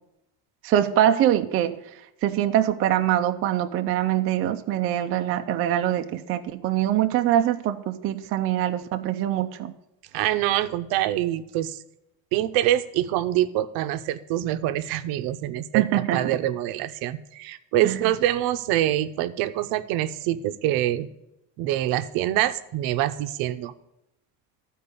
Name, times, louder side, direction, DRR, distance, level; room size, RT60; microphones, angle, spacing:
voice 1, 0.6-1.7 2.2-9.7 15.7-16.2 17.8-18.0, right 12 dB, 35° right, 0.4 m, -23 dB
voice 2, 10.1-11.8 12.3-21.1 21.6-23.7, right 13 dB, 65° right, 0.7 m, -25 dB
13.0 x 4.6 x 6.8 m
cardioid pair, 155°, 40 cm